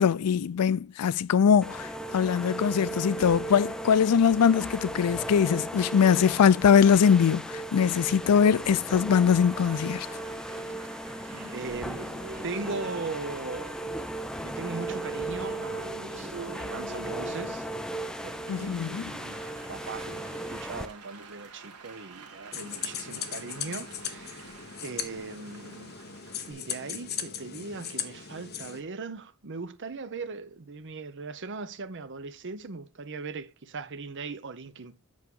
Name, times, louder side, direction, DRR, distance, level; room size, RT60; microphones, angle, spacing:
voice 1, 0.0-10.1 18.5-19.1, left 7 dB, 90° left, 0.4 m, -22 dB
sound 1, 1.6-20.9, right 1 dB, 5° left, 0.5 m, -36 dB
Applause, 7.5-26.5, right 3 dB, 90° right, 1.8 m, -47 dB
voice 2, 11.5-12.1 12.4-13.9 14.3-17.7 18.2-24.6 24.8-26.0 26.5-35.0, right 4 dB, 55° right, 0.8 m, -39 dB
sound 2, 22.5-28.8, left 8 dB, 45° left, 1.1 m, -38 dB
8.5 x 6.2 x 3.7 m
head